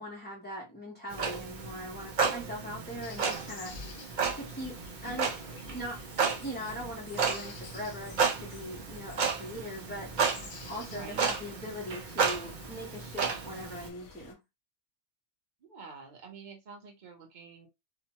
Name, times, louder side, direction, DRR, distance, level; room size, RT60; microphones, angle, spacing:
voice 1, 0.0-3.8 4.3-10.1 10.7-14.4, equal, 10° left, 0.5 m, -41 dB
Clock, 1.1-13.9, right 5 dB, 70° right, 0.4 m, -33 dB
sound 1, 3.0-14.3, left 5 dB, 80° left, 1.1 m, -51 dB
voice 2, 10.9-11.2 15.6-17.7, right 5 dB, 40° right, 0.8 m, -48 dB
2.7 x 2.1 x 2.8 m
omnidirectional pair, 1.5 m